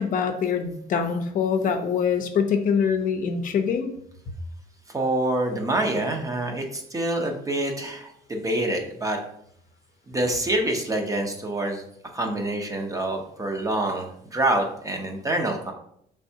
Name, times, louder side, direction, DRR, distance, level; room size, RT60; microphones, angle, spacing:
voice 1, 0.0-3.9, left 6 dB, 55° left, 6 dB, 0.6 m, -24 dB
voice 2, 4.9-9.2 10.1-11.8 12.1-15.7, right 1 dB, 20° right, 3 dB, 0.7 m, -26 dB
5.2 x 3.4 x 2.7 m, 0.71 s
cardioid pair, 110°, 17 cm